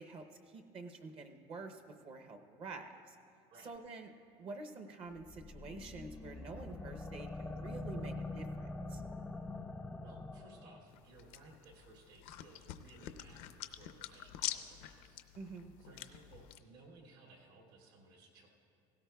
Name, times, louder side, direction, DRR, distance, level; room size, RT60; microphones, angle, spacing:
voice 1, 0.0-3.2 3.6-4.1 4.4-9.0 15.4-15.8, right 3 dB, 40° right, 6 dB, 0.7 m, -48 dB
sound 1, 5.2-10.8, left 2 dB, 10° left, 0.4 m, -44 dB
voice 2, 10.0-15.2 15.8-18.5, right 3 dB, 75° right, -1 dB, 2.5 m, -60 dB
sound 2, 10.9-16.6, left 13 dB, 75° left, 0.6 m, -46 dB
17.5 x 16.5 x 2.3 m, 2.5 s
cardioid pair, 135°, 14 cm